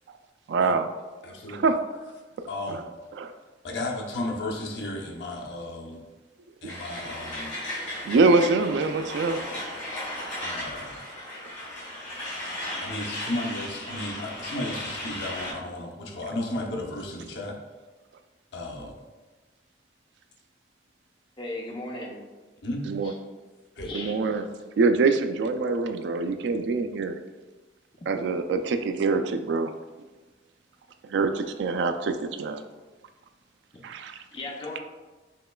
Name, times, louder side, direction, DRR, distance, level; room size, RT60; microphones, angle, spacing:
voice 1, 0.5-0.9 1.5-1.8 2.7-2.8 3.2-3.3 8.1-9.7 22.9-23.1 23.9-24.5 24.8-27.2 28.1-29.7 31.1-32.6 33.8-34.2, right 3 dB, 70° right, 9 dB, 0.3 m, -24 dB
voice 2, 1.2-1.7 2.5-2.9 3.6-6.0 6.6-7.5 10.4-11.0 12.8-17.6 18.5-19.0 22.6-22.9 23.8-23.9, left 1 dB, 70° left, 0 dB, 0.7 m, -34 dB
Truck, 6.7-15.5, left 1 dB, 45° left, 1.5 m, -35 dB
voice 3, 21.4-22.2 23.0-23.1 23.8-24.1 34.3-34.8, left 2 dB, 25° left, -2 dB, 0.7 m, -36 dB
5.7 x 3.1 x 2.2 m, 1.2 s
head